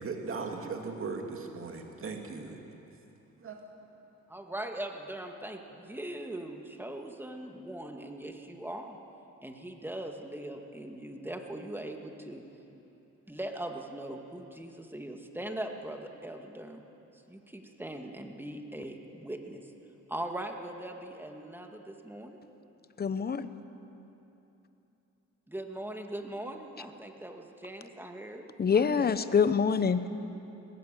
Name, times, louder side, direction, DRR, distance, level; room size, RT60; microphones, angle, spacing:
voice 1, 0.0-2.6 3.4-3.7, right 4 dB, 45° right, 2 dB, 2.4 m, -38 dB
voice 2, 4.3-9.0 9.4-12.4 13.3-16.8 17.1-19.7 20.1-22.4 25.5-29.2, right 1 dB, 5° right, 3 dB, 2.0 m, -40 dB
voice 3, 23.0-23.5 28.6-30.1, left 6 dB, 30° left, 12 dB, 0.9 m, -25 dB
19.5 x 15.5 x 9.3 m, 3.0 s
cardioid pair, 90°, 30 cm